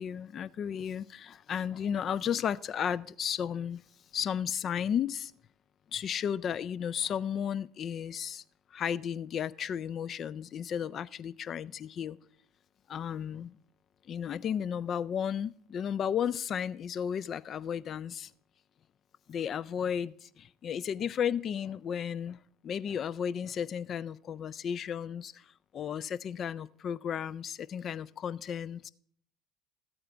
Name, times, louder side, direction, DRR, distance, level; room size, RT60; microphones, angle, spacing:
voice 1, 0.0-3.8 4.1-5.3 5.9-8.4 8.7-12.2 12.9-13.6 14.0-18.3 19.3-28.9, left 8 dB, 45° left, 19 dB, 0.3 m, -34 dB
12.5 x 8.7 x 3.5 m, 0.62 s
hypercardioid pair, 75°, 0 cm